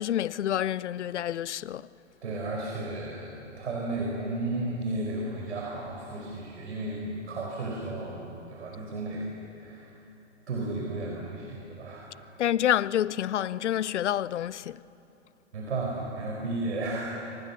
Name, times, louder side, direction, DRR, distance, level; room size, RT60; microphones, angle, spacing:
voice 1, 0.0-1.8 12.4-14.8, left 11 dB, 75° left, 0.7 m, -28 dB
voice 2, 2.2-9.3 9.6-9.9 10.5-12.1 15.5-17.1, right 2 dB, 75° right, 5.2 m, -33 dB
27.0 x 25.5 x 7.1 m
hypercardioid pair, 120°, 35 cm